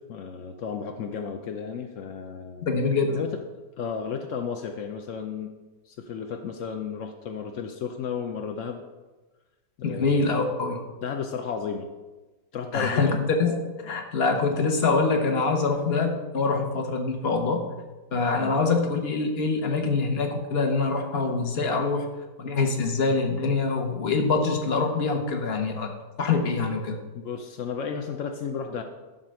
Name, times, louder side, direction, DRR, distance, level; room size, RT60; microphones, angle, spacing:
voice 1, 0.1-2.7 3.1-3.3 3.8-5.5 5.9-8.8 9.8-10.4 11.0-11.9 12.5-13.2 18.4-18.6 27.1-28.8, left 6 dB, 75° left, 4 dB, 0.7 m, -33 dB
voice 2, 2.7-3.2 9.8-10.8 12.7-17.6 18.1-22.1 22.4-25.9 26.2-27.0, left 4 dB, 40° left, 4 dB, 1.0 m, -25 dB
11.5 x 3.9 x 6.3 m, 1.2 s
omnidirectional pair, 2.0 m